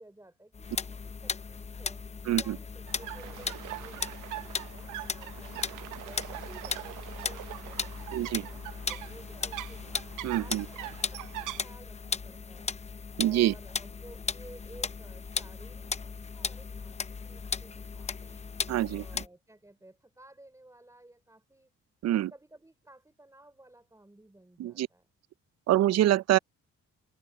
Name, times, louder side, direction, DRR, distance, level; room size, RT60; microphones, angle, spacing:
voice 1, 0.0-2.0 2.4-5.5 6.0-8.6 8.9-10.0 10.4-12.7 13.2-18.5 18.9-21.7 22.3-25.0, right 1 dB, 10° right, 5.1 m, -54 dB
sound 1, 0.5-19.3, left 5 dB, 20° left, 0.6 m, -37 dB
voice 2, 2.3-2.6 8.1-8.5 10.2-10.7 13.2-13.5 18.7-19.2 22.0-22.3 24.6-24.9 25.7-26.4, right 13 dB, 60° right, 0.5 m, -25 dB
sound 2, 2.9-11.6, right 16 dB, 85° right, 0.9 m, -42 dB
cardioid pair, 90°, 30 cm